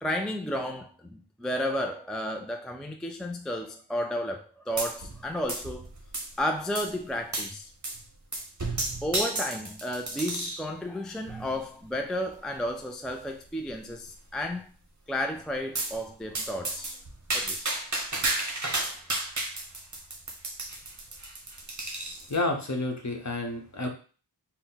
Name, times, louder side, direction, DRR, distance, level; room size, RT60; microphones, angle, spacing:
voice 1, 0.0-5.9 6.4-7.7 9.0-14.7 15.1-16.9 17.3-17.7, left 1 dB, ahead, 0.3 m, -32 dB
sound 1, 4.8-5.2 5.5-6.4 6.7-6.9 7.3-7.5 7.8-8.0 8.3-10.7 11.3-11.6 12.3-12.4 12.7-12.8 13.1-13.2 13.6-14.1 15.7-16.0 16.3-22.4, right 2 dB, 45° right, 0.9 m, -32 dB
voice 2, 22.3-23.9, left 2 dB, 40° left, 0.9 m, -30 dB
4.1 x 2.1 x 4.0 m
wide cardioid pair, 45°, 41 cm